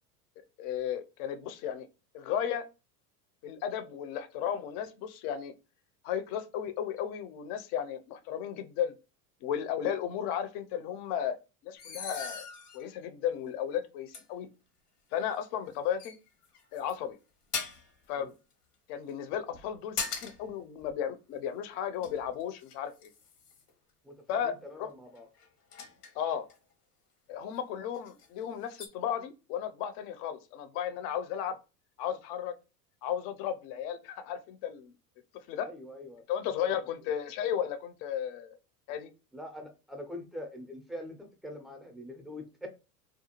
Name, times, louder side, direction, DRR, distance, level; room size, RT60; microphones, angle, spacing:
voice 1, 0.6-1.9 2.1-2.6 3.4-5.5 6.0-8.9 9.4-11.4 11.6-12.5 12.7-14.5 15.1-16.2 16.7-17.2 18.1-18.3 18.9-23.1 24.3-24.9 26.1-26.5 27.3-31.6 32.0-32.5 33.0-34.9 35.5-35.7 36.3-38.6 38.9-39.1, left 9 dB, 50° left, 0.5 m, -34 dB
sound 1, 11.8-12.9 13.5-13.6 14.1-14.2 15.4-15.7 16.0-16.9 17.5-18.0 19.5-20.5 20.8-21.0 21.7-23.7 25.1-26.6 27.6-27.7 27.9-28.3 28.7-28.9, left 5 dB, 80° left, 0.9 m, -40 dB
voice 2, 24.0-25.3 35.6-36.2 36.6-36.7 39.3-42.7, left 1 dB, ahead, 0.4 m, -44 dB
2.5 x 2.2 x 2.9 m
hypercardioid pair, 90°, 47 cm